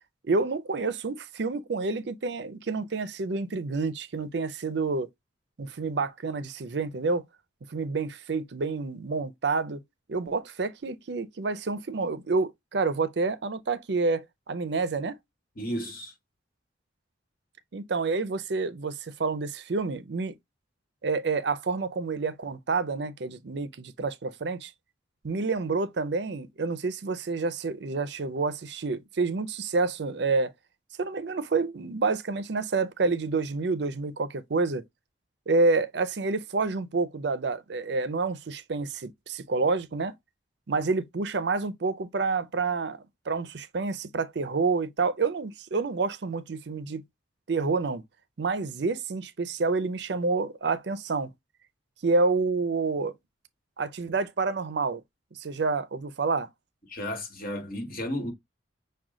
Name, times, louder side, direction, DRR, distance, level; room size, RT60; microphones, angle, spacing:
voice 1, 0.3-5.1 5.6-7.2 7.7-9.8 10.1-15.2 17.7-20.3 21.0-24.7 25.2-30.5 31.0-34.8 35.5-40.1 40.7-47.0 47.5-48.0 48.4-51.3 52.0-53.1 53.8-55.0 55.3-56.5, right 4 dB, 60° right, 0.5 m, -28 dB
voice 2, 15.5-16.1 56.9-58.3, equal, 50° left, 1.7 m, -33 dB
6.0 x 2.3 x 3.7 m
head